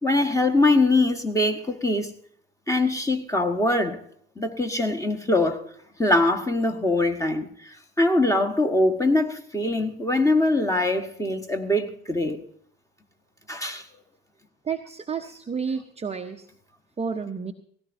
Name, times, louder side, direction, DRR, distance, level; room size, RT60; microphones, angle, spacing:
voice 1, 0.0-2.1 2.7-4.0 4.4-5.6 6.0-12.4 13.5-13.8, left 2 dB, 10° left, 1.4 m, -23 dB
voice 2, 14.6-16.4 17.0-17.5, right 6 dB, 15° right, 0.7 m, -30 dB
18.0 x 16.5 x 2.7 m
figure-of-eight pair, 65°, 38 cm